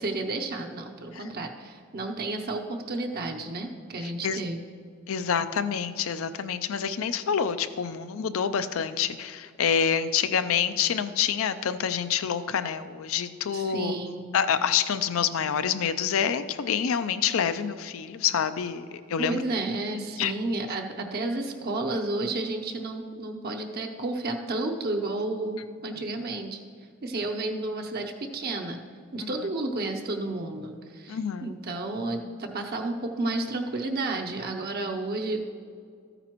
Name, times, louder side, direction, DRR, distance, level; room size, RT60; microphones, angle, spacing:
voice 1, 0.0-4.6 13.5-14.3 19.2-26.6 27.0-28.8 29.1-35.5, right 2 dB, 45° right, 2 dB, 0.6 m, -31 dB
voice 2, 4.0-4.4 5.1-13.9 14.3-19.4 20.2-20.3 29.2-29.3 31.1-31.5, left 7 dB, 65° left, 12 dB, 0.4 m, -27 dB
13.5 x 9.0 x 3.0 m, 2.2 s
head